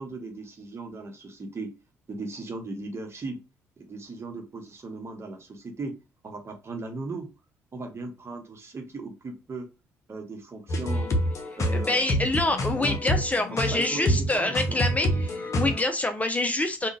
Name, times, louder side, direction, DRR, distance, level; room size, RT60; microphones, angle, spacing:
voice 1, 0.0-1.8 2.1-3.4 3.8-6.0 6.2-7.3 7.7-9.7 10.1-11.2 11.6-12.1 12.7-13.0 13.5-14.8, right 3 dB, 35° right, 3 dB, 1.0 m, -37 dB
sound 1, 10.7-15.8, equal, 40° left, 0.8 m, -27 dB
voice 2, 11.7-16.9, left 2 dB, 20° left, 6 dB, 0.5 m, -26 dB
3.6 x 2.3 x 2.6 m, 0.29 s
figure-of-eight pair, 45°, 8 cm